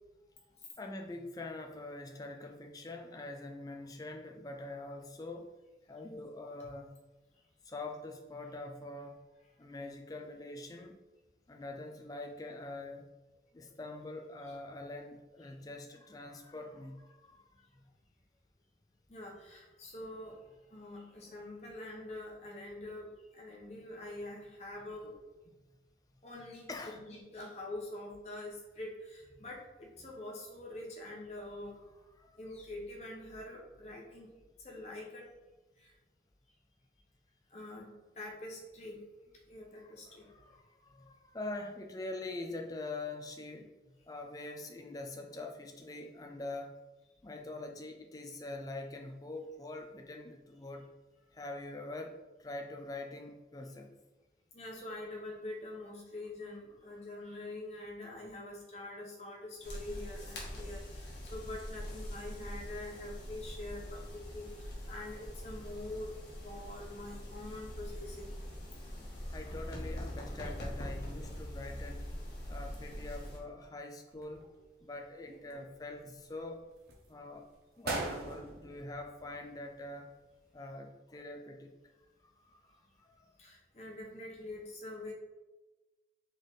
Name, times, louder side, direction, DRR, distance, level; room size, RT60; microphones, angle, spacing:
voice 1, 0.8-5.5 5.9-6.9 7.6-9.2 9.6-11.0 11.5-13.1 13.5-17.8 26.7-27.0 32.1-32.4 39.8-43.7 44.1-46.8 47.2-50.9 51.3-52.1 52.4-53.9 69.1-72.1 72.5-74.5 74.8-76.6 77.1-77.5 77.8-80.1 80.5-81.8 82.2-83.3, left 2 dB, 20° left, 3 dB, 0.4 m, -44 dB
voice 2, 19.1-20.4 20.7-23.1 23.3-25.2 26.2-31.8 32.4-34.3 34.6-35.3 35.8-35.9 37.5-39.1 39.5-40.3 54.5-66.1 66.4-68.3 83.4-85.1, left 1 dB, 40° left, -2 dB, 0.9 m, -45 dB
sound 1, 59.6-73.4, equal, 75° left, 1.2 m, -43 dB
sound 2, 74.1-74.9 75.3-76.2 76.7-77.1 77.5-77.6 77.8-79.8 80.1-80.2, right 2 dB, 60° right, 0.9 m, -41 dB
3.9 x 3.3 x 4.0 m, 1.1 s
head